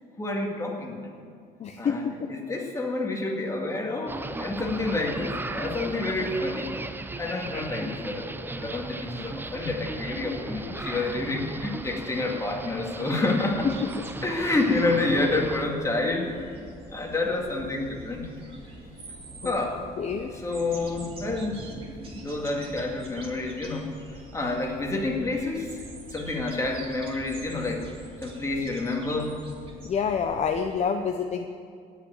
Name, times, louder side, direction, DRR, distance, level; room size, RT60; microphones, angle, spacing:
voice 1, 0.2-1.1 1.8-6.8 7.2-13.7 14.2-18.3 19.4-19.8 20.3-21.7 22.1-23.9 24.3-25.8 26.1-27.9 28.2-29.3, left 2 dB, 20° left, 0 dB, 2.2 m, -29 dB
voice 2, 1.6-2.3 10.6-10.8 19.4-19.5 20.0-20.3 29.8-31.5, left 6 dB, 40° left, 5 dB, 0.7 m, -28 dB
sound 1, 4.1-15.7, right 2 dB, 10° right, 0.6 m, -36 dB
sound 2, 13.6-30.8, right 1 dB, 35° right, 2.9 m, -44 dB
17.0 x 5.8 x 9.3 m, 2.3 s
cardioid pair, 110°, 17 cm